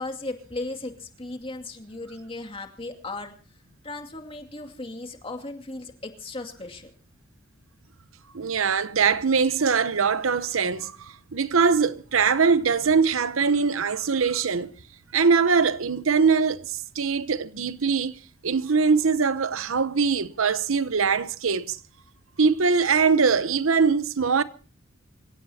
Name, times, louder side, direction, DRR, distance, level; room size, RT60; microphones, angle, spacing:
voice 1, 0.0-3.3 3.8-6.9, left 2 dB, 30° left, 2.4 m, -36 dB
voice 2, 8.3-14.7 15.1-21.8 22.4-24.4, right 5 dB, 75° right, 0.8 m, -22 dB
26.5 x 16.5 x 2.8 m
head